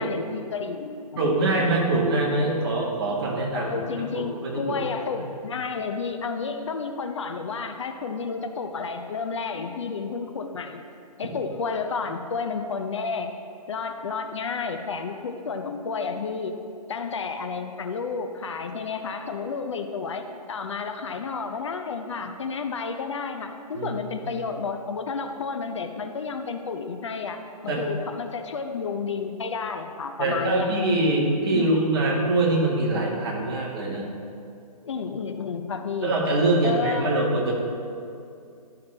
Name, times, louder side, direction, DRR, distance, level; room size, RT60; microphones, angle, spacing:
voice 1, 0.0-1.5 3.5-10.8 11.2-13.3 13.7-16.5 16.9-31.2 31.5-31.9 34.8-36.1 36.6-37.2, left 5 dB, 50° left, 6 dB, 0.5 m, -31 dB
voice 2, 1.2-3.8 4.1-4.8 5.1-5.3 23.7-24.0 27.7-27.8 30.2-34.0 36.0-37.5, right 2 dB, 40° right, -2 dB, 1.5 m, -24 dB
11.5 x 5.7 x 3.3 m, 2.5 s
hypercardioid pair, 160°, 20 cm